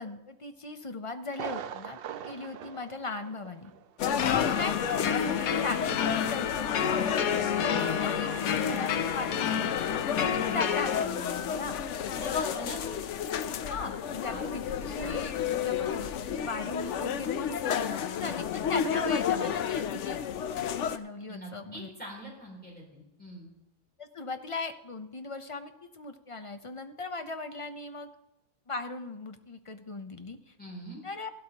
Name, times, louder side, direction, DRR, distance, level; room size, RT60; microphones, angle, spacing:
voice 1, 0.0-3.7 4.3-4.7 5.1-8.3 8.6-11.8 13.7-20.2 20.6-21.9 24.0-28.1 28.7-30.4 31.0-31.3, left 3 dB, 40° left, 8 dB, 0.4 m, -38 dB
Thunder, 1.3-3.9 4.2-4.3 4.8-4.9, right 9 dB, 65° right, 0.6 m, -41 dB
sound 1, 4.0-21.0, left 8 dB, 65° left, 0.9 m, -32 dB
voice 2, 4.0-4.5 12.1-13.0 14.3-14.4 21.3-23.5 30.6-31.0, equal, 5° left, -3 dB, 3.3 m, -43 dB
sound 2, 4.2-11.0, left 7 dB, 85° left, 1.2 m, -29 dB
16.0 x 12.5 x 2.9 m, 0.93 s
omnidirectional pair, 1.5 m